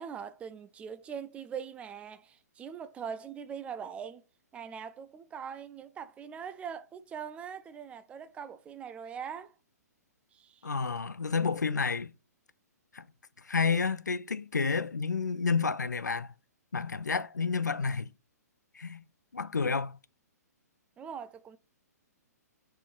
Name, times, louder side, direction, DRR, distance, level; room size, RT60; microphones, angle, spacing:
voice 1, 0.0-4.2 4.5-9.5 10.3-10.7 21.0-21.6, right 7 dB, 15° right, 0.3 m, -42 dB
voice 2, 10.6-12.1 12.9-13.1 13.4-16.3 16.7-18.1 18.7-19.0 19.3-20.0, left 5 dB, 90° left, 0.4 m, -30 dB
5.2 x 4.4 x 2.3 m
figure-of-eight pair, 125°, 9 cm